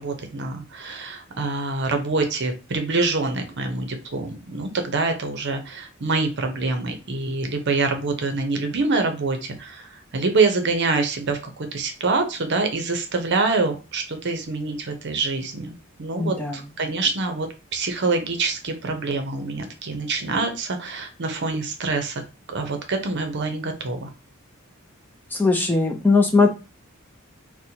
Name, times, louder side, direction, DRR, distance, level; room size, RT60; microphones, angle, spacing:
voice 1, 0.0-22.2 22.5-24.1, right 3 dB, 55° right, 6 dB, 0.7 m, -25 dB
voice 2, 16.2-16.6 25.3-26.5, left 3 dB, 10° left, 3 dB, 0.4 m, -19 dB
4.1 x 2.1 x 2.7 m, 0.30 s
head